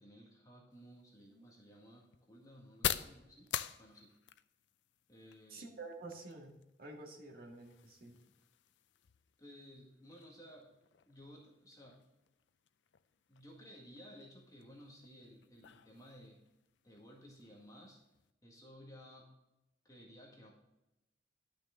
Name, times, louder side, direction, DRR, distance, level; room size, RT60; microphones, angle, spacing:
voice 1, 0.0-3.5 3.8-4.1 5.1-5.7 9.4-10.7 11.1-12.1 13.3-16.4 16.8-18.0 18.4-19.4 19.8-20.5, equal, 20° left, -2 dB, 1.8 m, -56 dB
sound 1, 0.7-18.3, left 10 dB, 80° left, 0.5 m, -47 dB
voice 2, 5.5-8.2, right 3 dB, 55° right, 0 dB, 1.9 m, -49 dB
11.5 x 6.1 x 3.7 m, 0.93 s
head